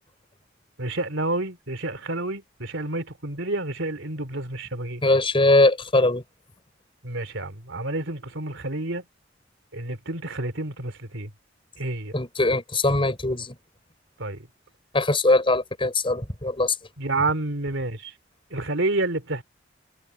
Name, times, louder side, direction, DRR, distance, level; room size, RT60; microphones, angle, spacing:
voice 1, 0.8-5.0 7.0-9.0 9.7-11.3 11.8-12.1 14.2-14.4 17.0-18.1 18.5-19.4, right 2 dB, 75° right, 3.4 m, -29 dB
voice 2, 5.0-6.2 12.1-13.5 14.9-16.7, left 2 dB, 30° left, 4.5 m, -21 dB
head